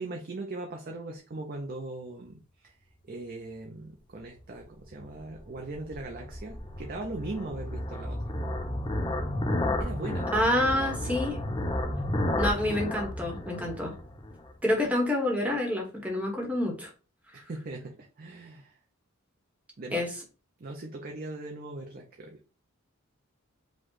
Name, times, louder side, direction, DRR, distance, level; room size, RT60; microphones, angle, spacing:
voice 1, 0.0-2.8 3.0-8.3 9.8-10.4 17.3-18.7 19.8-20.0 20.6-22.4, right 2 dB, 45° right, 2 dB, 0.6 m, -39 dB
sound 1, 4.9-14.5, left 1 dB, 20° left, 0.6 m, -32 dB
voice 2, 10.3-11.4 12.4-13.9 14.6-16.9 19.9-20.1, left 1 dB, 5° right, 0 dB, 1.1 m, -27 dB
5.1 x 2.3 x 3.9 m, 0.35 s
head